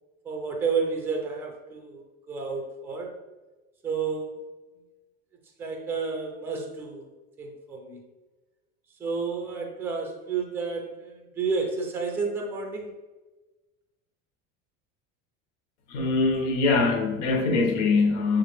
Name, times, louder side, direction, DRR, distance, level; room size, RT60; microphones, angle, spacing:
voice 1, 0.2-3.2 3.8-4.4 5.6-7.0 7.4-8.0 9.0-12.9, right 5 dB, 5° right, 2 dB, 0.4 m, -31 dB
voice 2, 15.9-18.4, left 3 dB, 85° left, 3 dB, 1.1 m, -23 dB
7.0 x 2.5 x 3.1 m, 1.2 s
cardioid pair, 170°, 34 cm